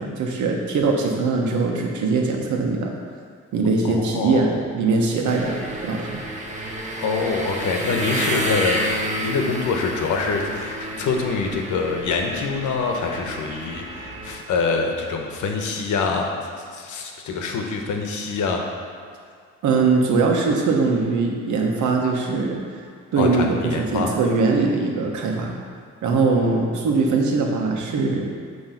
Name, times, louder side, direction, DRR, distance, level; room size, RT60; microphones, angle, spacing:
voice 1, 0.0-2.9 3.5-6.2 19.6-22.6 23.1-25.5 26.0-28.3, right 4 dB, 75° right, 1 dB, 1.2 m, -21 dB
voice 2, 3.8-4.5 7.0-8.8 9.2-16.3 16.7-18.6 23.2-24.1, left 4 dB, 75° left, 2 dB, 1.0 m, -25 dB
sound 1, 5.3-14.4, right 1 dB, 25° right, 1.1 m, -30 dB
9.1 x 3.2 x 5.7 m, 2.2 s
cardioid pair, 90°, 30 cm